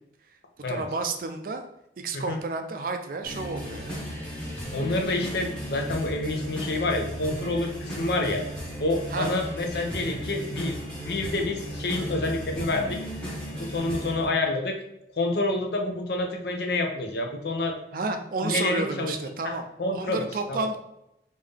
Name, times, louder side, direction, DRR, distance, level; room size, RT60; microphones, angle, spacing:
voice 1, 0.7-1.6 2.0-4.0 9.1-9.3 17.9-19.6 19.9-20.8, right 3 dB, 50° right, 6 dB, 0.4 m, -31 dB
sound 1, 3.2-14.2, equal, 5° left, 1.0 m, -35 dB
voice 2, 4.7-8.4 8.8-13.0 13.6-14.8 15.2-17.8 18.4-19.1 19.4-19.5 19.8-20.7, left 2 dB, 65° left, 3 dB, 0.6 m, -28 dB
3.7 x 2.6 x 3.4 m, 0.83 s
head